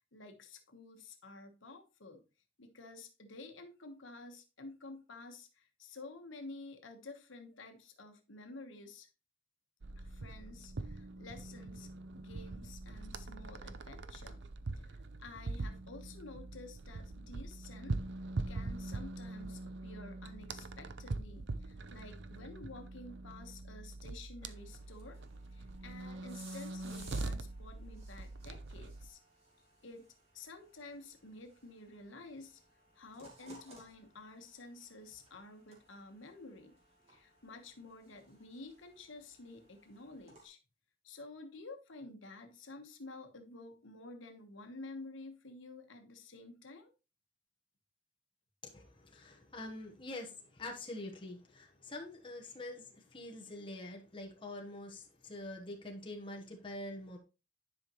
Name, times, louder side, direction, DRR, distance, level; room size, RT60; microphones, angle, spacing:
voice 1, 0.0-2.2 2.6-9.1 10.0-11.9 12.1-14.4 14.8-18.0 18.5-25.2 25.5-29.2 29.8-30.1 30.3-32.6 32.9-36.8 37.1-40.6 41.0-46.9, left 2 dB, 75° left, 1.3 m, -51 dB
sound 1, 9.8-29.1, right 2 dB, 60° right, 0.6 m, -43 dB
sound 2, 24.5-40.5, right 2 dB, 30° right, 2.2 m, -61 dB
voice 2, 48.6-57.2, left 1 dB, 25° left, 1.2 m, -45 dB
10.5 x 5.1 x 3.0 m
head